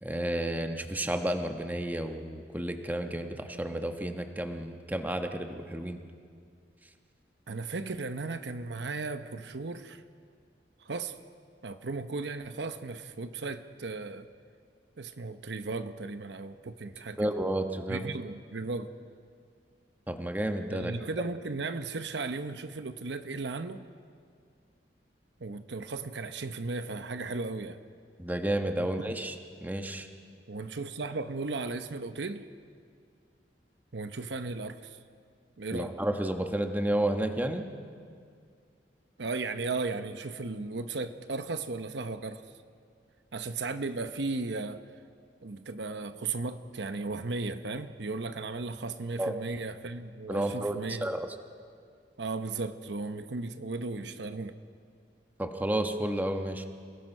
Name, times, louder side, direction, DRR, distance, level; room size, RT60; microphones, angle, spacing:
voice 1, 0.0-6.0 17.2-18.0 20.1-20.9 28.2-29.3 29.6-30.1 35.7-37.6 49.2-49.3 50.3-51.3 55.4-56.7, right 1 dB, 10° right, 5 dB, 1.2 m, -31 dB
voice 2, 7.5-10.0 10.8-11.1 11.6-14.3 15.0-17.3 17.9-18.9 20.7-23.9 25.4-27.8 28.8-29.1 30.5-32.5 33.9-35.0 35.6-36.0 39.2-42.4 43.3-44.8 45.4-51.1 52.2-54.6, right 3 dB, 85° right, 9 dB, 0.9 m, -36 dB
28.5 x 18.0 x 5.5 m, 2.2 s
head